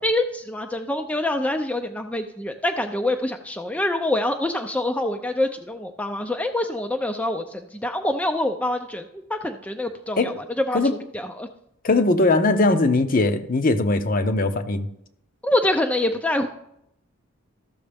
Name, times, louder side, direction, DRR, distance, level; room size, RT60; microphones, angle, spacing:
voice 1, 0.0-10.8 11.1-11.5 15.4-16.5, left 1 dB, 5° left, 5 dB, 0.4 m, -25 dB
voice 2, 11.8-14.9, left 2 dB, 40° left, 9 dB, 0.7 m, -20 dB
14.0 x 6.3 x 3.4 m, 0.76 s
head